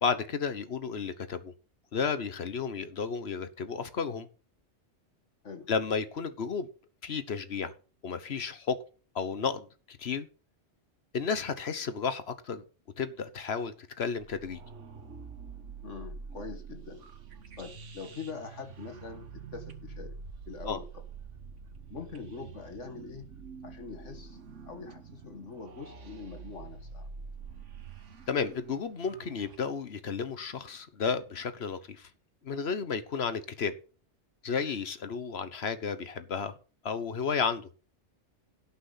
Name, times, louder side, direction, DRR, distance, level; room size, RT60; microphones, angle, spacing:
voice 1, 0.0-1.5 1.9-4.3 5.7-6.7 7.0-7.7 8.0-8.8 9.1-10.3 11.1-12.6 13.0-14.6 20.7-20.8 28.3-32.1 32.4-33.7 34.4-36.6 36.8-37.7, left 5 dB, 65° left, 12 dB, 1.3 m, -32 dB
sound 1, 14.2-29.6, right 5 dB, 90° right, 1.6 m, -46 dB
voice 2, 15.8-17.0 17.6-20.2 20.5-21.0 21.9-23.2 23.6-24.4 24.7-27.1, left 5 dB, 85° left, 6 dB, 2.1 m, -43 dB
17.0 x 6.2 x 4.1 m, 0.37 s
omnidirectional pair, 1.2 m